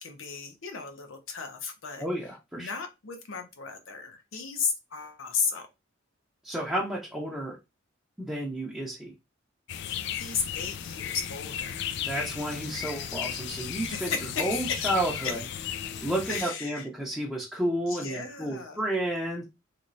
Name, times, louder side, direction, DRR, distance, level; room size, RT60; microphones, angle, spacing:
voice 1, 0.0-2.1 2.6-5.7 9.9-11.9 13.9-14.9 15.2-15.3 16.3-16.9 17.9-18.8, left 5 dB, 75° left, 0.8 m, -34 dB
voice 2, 2.0-2.7 6.4-7.6 8.2-9.1 12.0-14.1 14.4-15.4 16.0-19.4, right 1 dB, 5° right, 0.6 m, -31 dB
sound 1, 9.7-16.4, left 9 dB, 60° left, 0.3 m, -35 dB
3.1 x 3.1 x 2.6 m
head